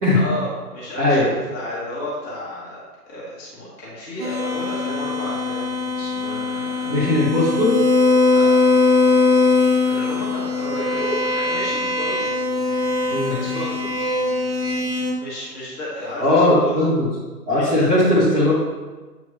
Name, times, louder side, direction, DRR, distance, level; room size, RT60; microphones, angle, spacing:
voice 1, 0.1-7.0 8.3-8.7 9.8-12.3 13.4-14.1 15.2-16.8 17.5-18.0, left 1 dB, 15° left, -7 dB, 1.1 m, -32 dB
voice 2, 1.0-1.3 6.9-7.8 13.1-13.3 16.2-17.1 17.5-18.5, left 1 dB, 10° right, -10 dB, 0.9 m, -18 dB
sound 1, 4.2-15.1, left 3 dB, 40° right, 1.1 m, -21 dB
8.1 x 4.5 x 2.7 m, 1.3 s
figure-of-eight pair, 135°, 48 cm